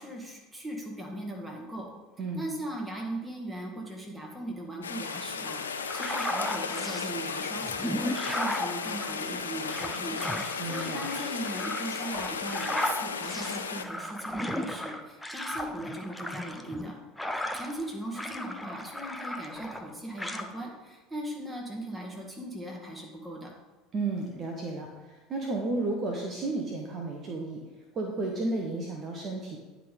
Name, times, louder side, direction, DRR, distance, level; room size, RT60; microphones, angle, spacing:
voice 1, 0.0-1.9 2.4-10.2 10.6-17.0 17.5-23.5, right 1 dB, 10° right, -1 dB, 2.0 m, -39 dB
voice 2, 2.2-2.5 10.6-11.1 23.9-27.6 27.9-29.6, right 2 dB, 40° right, 1 dB, 1.0 m, -33 dB
Rain, 4.8-13.8, left 5 dB, 85° left, 0.4 m, -35 dB
sound 1, 5.8-7.1 7.6-17.9 18.1-19.9 20.2-20.5, left 1 dB, 5° left, 0.7 m, -35 dB
10.0 x 3.7 x 5.2 m, 1.2 s
figure-of-eight pair, 70°, 0 cm